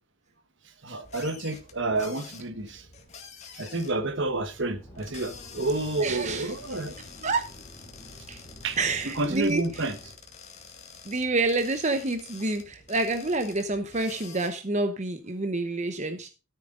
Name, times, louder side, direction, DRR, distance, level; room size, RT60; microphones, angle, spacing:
voice 1, 0.8-2.8 3.5-7.3 8.6-8.8 9.2-9.9, right 2 dB, 55° right, 1.4 m, -30 dB
sound 1, 1.0-14.5, left 5 dB, 30° left, 2.1 m, -48 dB
sound 2, 4.7-10.1, left 1 dB, 10° left, 3.7 m, -49 dB
voice 2, 6.0-6.5 7.2-7.5 8.3-8.4 8.8-9.9 11.0-16.3, right 2 dB, 35° right, 0.9 m, -28 dB
14.0 x 8.0 x 3.8 m
head